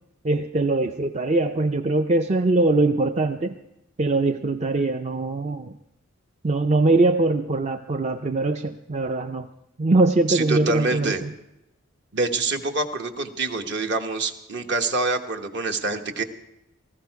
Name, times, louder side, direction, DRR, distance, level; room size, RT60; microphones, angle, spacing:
voice 1, 0.2-3.5 4.0-5.7 6.4-9.5 9.8-11.3, right 2 dB, 30° right, 8 dB, 0.4 m, -22 dB
voice 2, 10.3-11.2 12.1-16.2, right 3 dB, 55° right, 6 dB, 1.2 m, -26 dB
18.5 x 15.0 x 4.7 m, 0.87 s
head